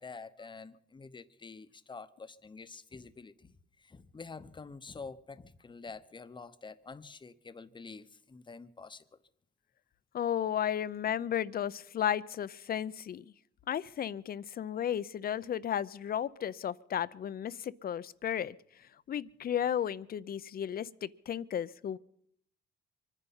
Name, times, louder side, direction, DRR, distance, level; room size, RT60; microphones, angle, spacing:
voice 1, 0.0-9.2, left 4 dB, 25° left, 0.9 m, -48 dB
voice 2, 10.1-13.3 13.7-18.5 19.1-22.0, left 9 dB, 50° left, 0.6 m, -34 dB
24.0 x 10.0 x 5.6 m
cardioid pair, 90°, 20 cm